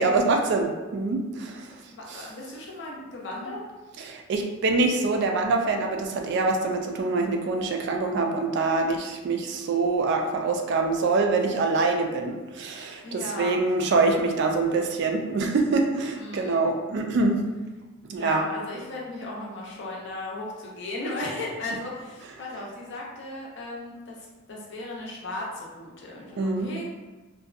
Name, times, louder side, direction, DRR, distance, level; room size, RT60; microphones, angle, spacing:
voice 1, 0.0-1.7 2.1-2.3 4.0-17.4 18.1-18.4 26.4-26.7, right 3 dB, 55° right, 3 dB, 0.3 m, -25 dB
voice 2, 1.7-3.6 13.0-14.0 14.6-14.7 16.2-16.6 18.2-26.8, left 2 dB, 60° left, -3 dB, 0.6 m, -36 dB
2.6 x 2.2 x 2.4 m, 1.2 s
head